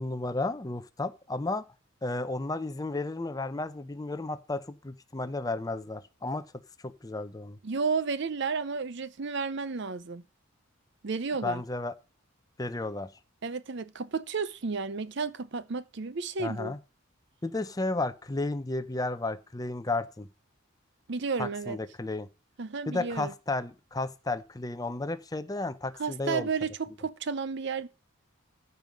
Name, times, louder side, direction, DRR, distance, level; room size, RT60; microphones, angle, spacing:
voice 1, 0.0-1.6 2.0-6.5 6.8-7.6 11.4-11.9 12.6-13.1 16.4-16.8 17.4-20.3 21.4-22.3 22.9-26.5, left 2 dB, 15° left, 0.6 m, -33 dB
voice 2, 7.6-10.2 11.0-11.6 13.4-16.7 21.1-21.8 22.6-23.3 26.0-27.9, right 5 dB, 55° right, 0.6 m, -32 dB
14.5 x 5.4 x 5.3 m
head